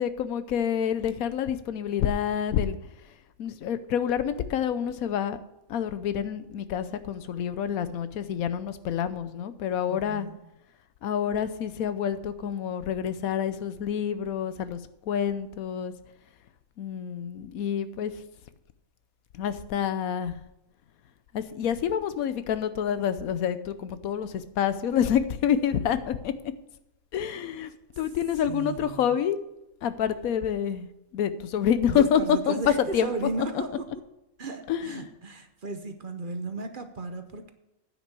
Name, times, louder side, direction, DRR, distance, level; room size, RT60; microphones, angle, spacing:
voice 1, 0.0-2.8 3.4-5.4 5.7-10.3 11.0-14.8 15.1-15.9 16.8-18.1 19.3-20.4 21.3-26.3 27.1-27.7 28.0-29.4 29.8-33.1 34.7-35.0, left 8 dB, 90° left, 13 dB, 1.2 m, -27 dB
voice 2, 9.9-10.4 28.0-28.1 28.5-29.2 31.9-33.9 34.4-37.5, right 3 dB, 45° right, 7 dB, 0.9 m, -35 dB
9.8 x 6.0 x 8.3 m, 0.91 s
omnidirectional pair, 1.4 m